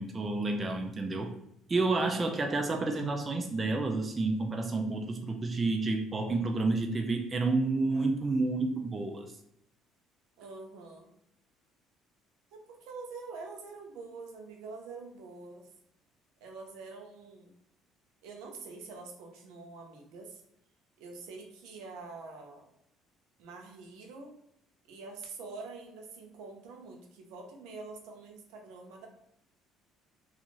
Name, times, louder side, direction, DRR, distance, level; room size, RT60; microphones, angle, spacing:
voice 1, 0.0-1.4 1.7-9.3, right 3 dB, 25° right, 3 dB, 0.4 m, -30 dB
voice 2, 10.4-11.1 12.5-15.7 16.4-17.5 18.2-20.4 21.0-22.7 23.4-24.3 24.9-29.1, right 3 dB, 85° right, 2 dB, 0.6 m, -46 dB
2.5 x 2.4 x 3.0 m, 0.76 s
cardioid pair, 115°, 0 cm